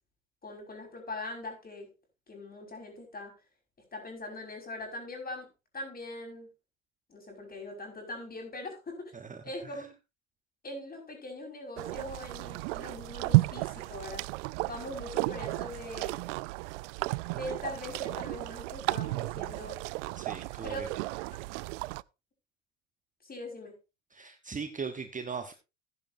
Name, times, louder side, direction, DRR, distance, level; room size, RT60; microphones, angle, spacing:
voice 1, 0.4-1.9 2.3-3.3 3.9-5.5 5.7-6.5 7.1-9.1 9.4-9.9 10.6-14.3 14.7-16.2 17.3-19.8 20.6-20.9 23.2-23.8, left 1 dB, 25° left, 2 dB, 5.5 m, -41 dB
voice 2, 9.1-9.8 20.2-20.9 24.1-25.5, right 5 dB, 20° right, 7 dB, 1.1 m, -39 dB
sound 1, 11.8-22.0, right 23 dB, 70° right, 0.5 m, -33 dB
15.0 x 10.0 x 2.7 m, 0.27 s
hypercardioid pair, 80°, 38 cm